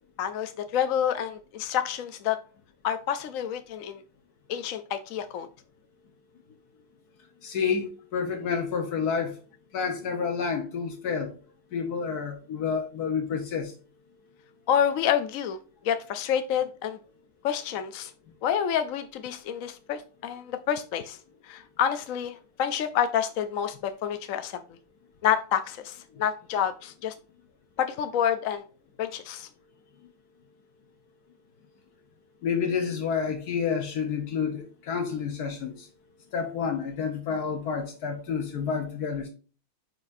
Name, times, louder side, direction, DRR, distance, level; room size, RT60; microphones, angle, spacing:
voice 1, 0.2-2.4 2.8-4.0 4.5-5.5 14.7-15.6 15.8-17.0 17.4-18.1 18.4-21.2 21.5-24.6 25.2-27.1 27.8-28.6 29.0-29.5, left 9 dB, 65° left, 0.9 m, -28 dB
voice 2, 7.4-9.4 9.7-11.3 11.7-13.7 32.4-35.9 36.3-39.3, left 6 dB, 85° left, 1.6 m, -29 dB
9.4 x 4.9 x 2.6 m
omnidirectional pair, 1.6 m